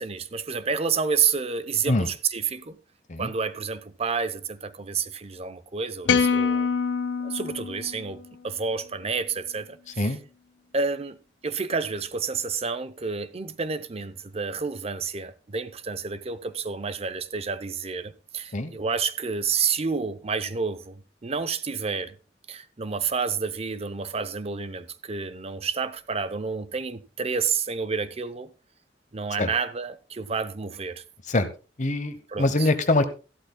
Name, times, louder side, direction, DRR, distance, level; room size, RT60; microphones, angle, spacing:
voice 1, 0.0-2.8 3.2-6.7 7.2-8.2 8.4-9.8 10.0-10.1 10.7-11.2 11.4-22.2 22.5-28.5 29.1-31.0 32.3-32.7, right 5 dB, 35° right, 0.7 m, -29 dB
sound 1, 6.1-8.4, left 5 dB, 90° left, 0.6 m, -25 dB
voice 2, 31.8-33.1, left 2 dB, 45° left, 1.0 m, -24 dB
14.0 x 12.0 x 2.3 m
head